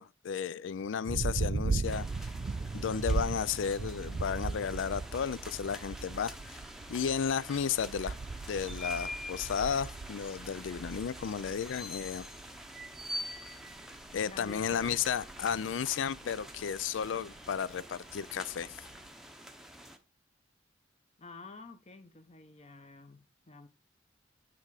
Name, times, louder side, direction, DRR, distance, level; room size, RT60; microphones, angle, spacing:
voice 1, 0.0-2.3 2.7-6.6 6.9-8.1 8.5-12.3 14.1-18.8, left 7 dB, 80° left, 0.4 m, -33 dB
sound 1, 1.1-19.1, right 3 dB, 45° right, 0.4 m, -38 dB
sound 2, 1.8-20.0, equal, ahead, 0.7 m, -46 dB
voice 2, 14.3-15.0 21.2-23.7, left 3 dB, 35° left, 0.9 m, -50 dB
9.0 x 3.6 x 4.8 m
head